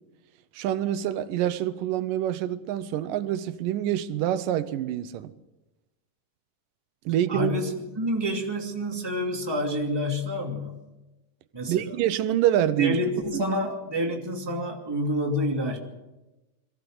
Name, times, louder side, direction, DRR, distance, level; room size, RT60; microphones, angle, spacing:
voice 1, 0.6-5.3 7.1-7.5 11.7-13.0, right 11 dB, 85° right, 2.5 m, -26 dB
voice 2, 7.3-10.8 11.5-12.0 12.8-15.8, equal, 10° right, 2.2 m, -28 dB
22.5 x 15.5 x 7.8 m
omnidirectional pair, 3.8 m